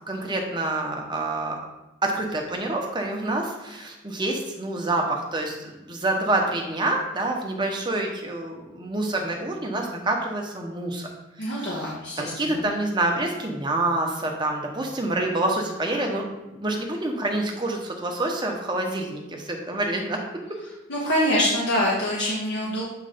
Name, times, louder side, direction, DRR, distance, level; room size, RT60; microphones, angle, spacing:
voice 1, 0.1-1.5 2.0-11.1 11.4-16.2 16.5-20.2, right 2 dB, 20° right, 1 dB, 0.9 m, -27 dB
voice 2, 11.4-12.6 20.9-22.8, equal, 55° left, -6 dB, 1.3 m, -25 dB
7.6 x 3.2 x 5.0 m, 1.0 s
head